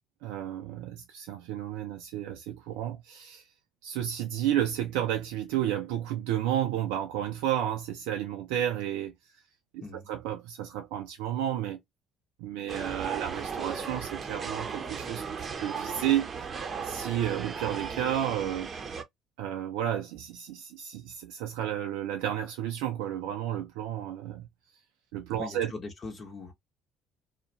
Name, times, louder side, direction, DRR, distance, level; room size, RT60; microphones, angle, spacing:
voice 1, 0.2-3.5 3.8-9.1 9.7-9.8 10.1-11.8 12.4-16.5 16.8-18.7 19.4-24.4 25.1-25.7, right 11 dB, 75° right, 0.3 m, -32 dB
sound 1, 12.7-19.0, right 6 dB, 40° right, 0.6 m, -36 dB
voice 2, 25.4-26.5, left 3 dB, 45° left, 0.9 m, -40 dB
2.3 x 2.1 x 2.8 m
hypercardioid pair, 55°, 0 cm